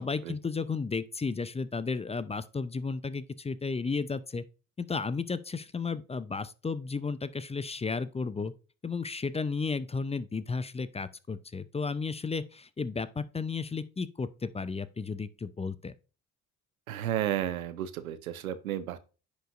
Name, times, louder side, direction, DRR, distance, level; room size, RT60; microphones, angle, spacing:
voice 1, 0.0-4.4 4.8-8.5 8.8-15.9, left 4 dB, 15° left, 0.5 m, -33 dB
voice 2, 16.9-19.0, right 11 dB, 90° right, 0.6 m, -32 dB
10.0 x 5.1 x 2.5 m
hypercardioid pair, 50°, 41 cm